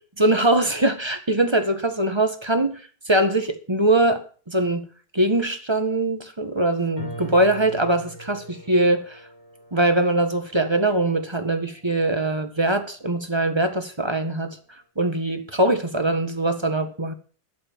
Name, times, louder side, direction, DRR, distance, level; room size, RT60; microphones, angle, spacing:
voice 1, 0.2-4.8 5.1-9.2 9.7-14.6 15.0-17.1, right 1 dB, 15° right, 1.3 m, -22 dB
sound 1, 7.0-13.4, right 2 dB, 15° left, 6.5 m, -43 dB
12.0 x 8.5 x 7.3 m
omnidirectional pair, 2.2 m